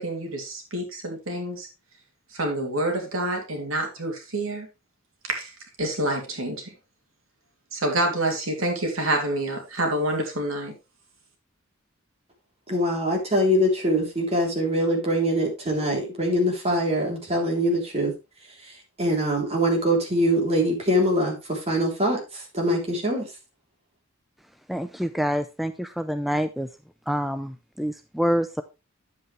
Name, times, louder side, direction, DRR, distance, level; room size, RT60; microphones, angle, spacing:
voice 1, 0.0-1.7 2.3-4.7 5.2-5.5 5.8-6.7 7.7-10.7, right 1 dB, 75° right, 2 dB, 2.9 m, -27 dB
voice 2, 12.7-18.1 19.0-23.3, equal, 30° right, 0 dB, 3.4 m, -23 dB
voice 3, 24.7-26.7 27.1-28.6, equal, ahead, 9 dB, 0.4 m, -27 dB
9.6 x 7.9 x 3.3 m, 0.26 s
head